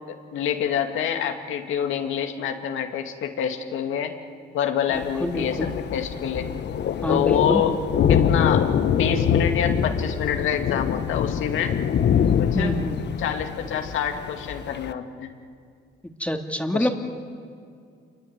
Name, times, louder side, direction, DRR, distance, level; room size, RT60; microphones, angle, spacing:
voice 1, 0.3-4.1 4.5-6.5 7.1-7.8 8.1-11.7 12.4-12.7 13.2-15.3 16.7-16.9, left 8 dB, 85° left, 5 dB, 2.4 m, -26 dB
Thunder, 4.9-14.9, left 8 dB, 60° left, 1.2 m, -24 dB
voice 2, 5.2-5.7 7.0-7.6 12.5-13.0 16.0-16.9, equal, 5° left, 4 dB, 2.5 m, -26 dB
27.0 x 23.0 x 9.5 m, 2.2 s
cardioid pair, 90°, 20 cm